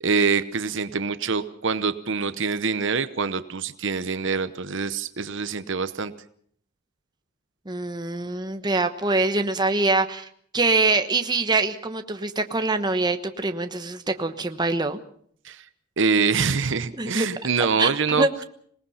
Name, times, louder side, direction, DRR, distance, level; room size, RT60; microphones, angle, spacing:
voice 1, 0.0-6.1 15.4-15.7 16.0-18.3, right 5 dB, 60° right, 12 dB, 0.9 m, -25 dB
voice 2, 7.7-10.3 10.5-15.0 17.0-17.3 17.8-18.4, right 3 dB, 20° right, 7 dB, 1.1 m, -24 dB
26.0 x 19.0 x 5.7 m, 0.63 s
head